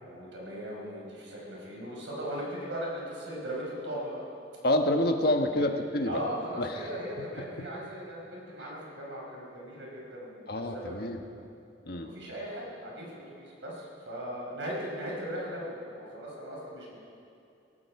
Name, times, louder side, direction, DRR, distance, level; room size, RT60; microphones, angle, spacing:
voice 1, 0.0-4.2 5.5-5.7 6.1-10.9 11.2-11.3 12.0-17.0, equal, 80° right, -4 dB, 5.1 m, -38 dB
voice 2, 4.6-6.2 6.6-6.8 7.6-7.7 10.5-11.2 11.9-12.1, left 1 dB, 55° left, 5 dB, 1.3 m, -27 dB
17.5 x 17.0 x 4.8 m, 2.6 s
head